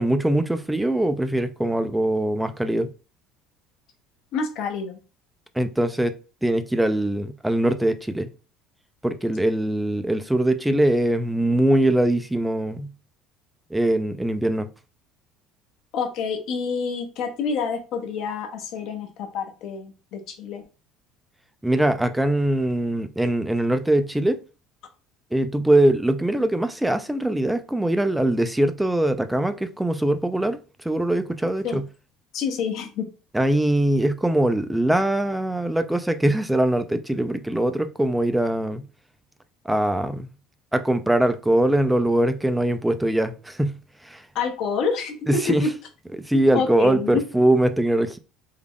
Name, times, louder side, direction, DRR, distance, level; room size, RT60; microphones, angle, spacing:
voice 1, 0.0-2.9 5.6-6.1 6.4-8.3 9.0-12.9 13.7-14.7 21.6-24.4 25.3-30.6 30.8-31.8 33.3-38.8 39.7-40.3 40.7-43.8 44.0-44.2 45.3-45.6 46.3-48.2, right 1 dB, 5° right, 0.4 m, -22 dB
voice 2, 4.3-5.0 15.9-20.6 31.6-31.8 32.3-33.1 44.3-45.7 46.5-47.2, left 5 dB, 55° left, 0.9 m, -27 dB
3.6 x 2.3 x 3.5 m
cardioid pair, 135°, 0 cm